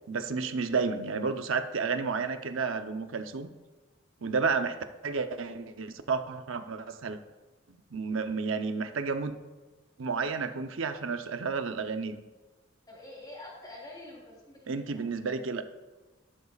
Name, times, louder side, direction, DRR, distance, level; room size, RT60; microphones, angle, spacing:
voice 1, 0.1-3.5 4.2-7.2 7.9-9.4 10.0-12.2 14.7-15.6, right 4 dB, 75° right, 8 dB, 0.7 m, -31 dB
voice 2, 12.9-15.1, left 1 dB, 20° left, -3 dB, 3.3 m, -47 dB
12.5 x 12.0 x 2.4 m, 1.2 s
head